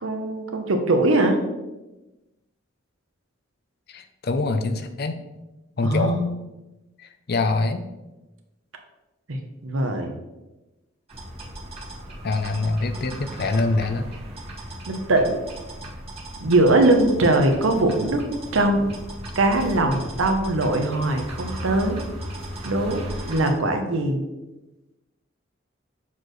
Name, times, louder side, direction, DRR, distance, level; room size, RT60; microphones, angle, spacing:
voice 1, 0.0-1.4 5.8-6.3 9.3-10.1 14.9-15.4 16.4-18.2 18.5-19.0 19.3-22.0 22.6-24.2, right 2 dB, 85° right, 5 dB, 0.9 m, -21 dB
voice 2, 3.9-5.2 5.8-6.2 7.0-7.8 12.2-14.1, left 3 dB, 55° left, 8 dB, 0.5 m, -24 dB
sound 1, 11.1-23.5, right 1 dB, 30° right, 1.7 m, -36 dB
7.0 x 4.5 x 3.1 m, 1.0 s
head